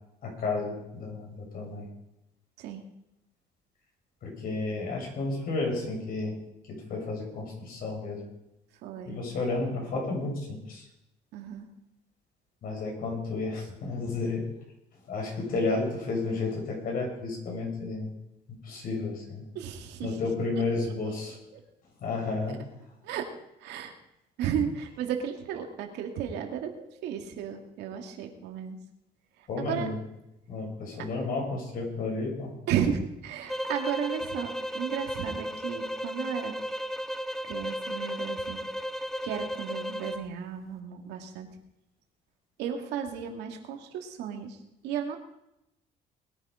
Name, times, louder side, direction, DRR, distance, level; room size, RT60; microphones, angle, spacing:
voice 1, 0.2-1.9 4.2-6.4 6.7-8.2 9.0-10.9 12.6-14.4 15.0-18.1 18.6-19.5 20.0-21.4 22.0-22.6 29.5-30.0 30.5-32.5, left 3 dB, 60° left, -1 dB, 7.5 m, -32 dB
voice 2, 8.8-9.2 11.3-11.7 19.5-20.2 21.1-21.6 23.0-23.3 23.6-23.9 24.4-28.8 29.4-29.9 32.7-36.5 37.4-38.6 39.2-41.5 42.6-45.2, right 8 dB, 85° right, 3 dB, 2.4 m, -34 dB
sound 1, 33.5-40.3, equal, ahead, 0.6 m, -34 dB
21.0 x 10.0 x 5.1 m, 0.86 s
cardioid pair, 110°, 17 cm